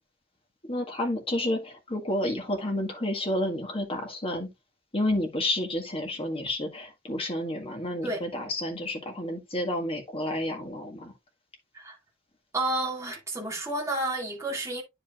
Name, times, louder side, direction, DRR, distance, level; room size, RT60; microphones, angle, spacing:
voice 1, 0.7-4.5 4.9-11.1, left 1 dB, 25° left, 1.7 m, -30 dB
voice 2, 12.5-14.8, right 2 dB, 15° right, 2.2 m, -30 dB
9.7 x 5.0 x 2.4 m
head